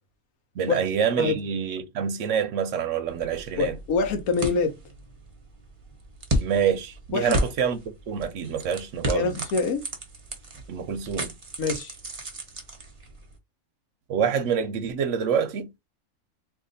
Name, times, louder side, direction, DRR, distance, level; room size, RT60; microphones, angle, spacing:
voice 1, 0.6-3.7 6.4-7.8 8.1-9.4 10.7-11.3 14.1-15.7, right 7 dB, 65° right, 0.9 m, -26 dB
sound 1, 3.1-13.4, equal, 30° right, 0.7 m, -34 dB
voice 2, 3.6-4.8 7.1-7.4 9.1-9.8 11.6-11.9, left 4 dB, 85° left, 1.2 m, -25 dB
2.6 x 2.6 x 3.9 m
omnidirectional pair, 1.5 m